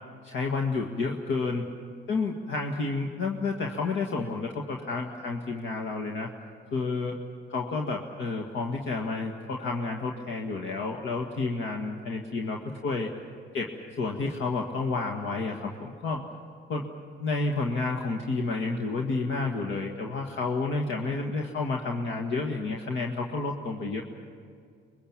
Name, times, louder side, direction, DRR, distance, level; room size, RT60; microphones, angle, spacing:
voice 1, 0.2-1.6 2.1-6.3 6.7-7.2 7.5-13.1 13.5-16.3 16.7-16.9 17.2-24.0, left 3 dB, 70° left, 1 dB, 1.8 m, -30 dB
24.5 x 22.5 x 7.3 m, 2.2 s
cardioid pair, 90°, 20 cm